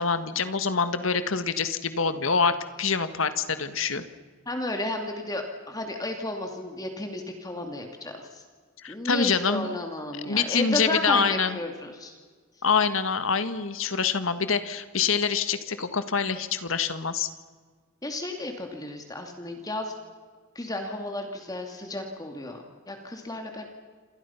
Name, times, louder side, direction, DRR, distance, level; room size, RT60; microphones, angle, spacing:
voice 1, 0.0-4.0 8.8-9.8 10.1-11.6 12.6-17.3, left 5 dB, 70° left, 11 dB, 1.5 m, -26 dB
voice 2, 4.5-8.4 8.9-12.2 18.0-19.9 20.5-23.7, left 1 dB, 20° left, 3 dB, 2.4 m, -33 dB
28.5 x 27.0 x 5.8 m, 1.5 s
head